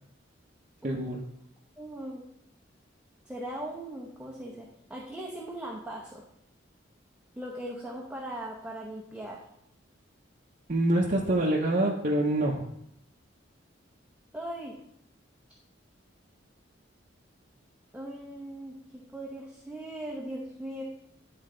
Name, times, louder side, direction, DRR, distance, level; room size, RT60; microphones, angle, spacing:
voice 1, 0.8-1.2 10.7-12.7, right 1 dB, 40° right, -3 dB, 0.8 m, -26 dB
voice 2, 1.8-2.2 3.3-6.2 7.4-9.4 14.3-14.8 17.9-20.8, right 1 dB, 5° right, -3 dB, 0.9 m, -39 dB
10.5 x 4.3 x 3.8 m, 0.75 s
head